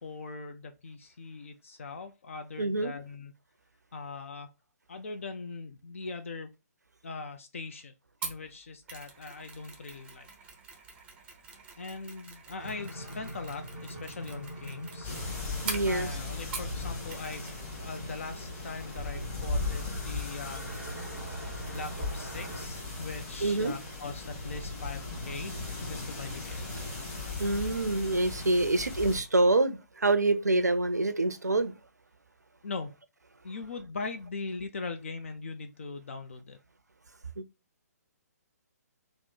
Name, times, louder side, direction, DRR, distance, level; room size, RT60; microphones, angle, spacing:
voice 1, 0.0-3.3 3.9-4.5 4.9-6.5 7.0-7.9 8.2-10.3 11.8-15.2 15.9-21.0 21.6-26.6 32.6-33.0 33.4-36.6, left 4 dB, 50° left, 0.4 m, -41 dB
voice 2, 2.6-3.0 15.6-16.1 23.4-23.7 27.4-31.7, right 2 dB, 80° right, 0.5 m, -26 dB
Mechanisms, 8.2-16.8 17.1-17.6 17.8-18.0, right 4 dB, 10° right, 0.5 m, -44 dB
sound 1, 12.6-22.6, right 1 dB, 90° left, 0.9 m, -45 dB
sound 2, 15.0-29.2, left 3 dB, 15° left, 0.9 m, -37 dB
3.0 x 2.0 x 3.7 m
figure-of-eight pair, 135°, 9 cm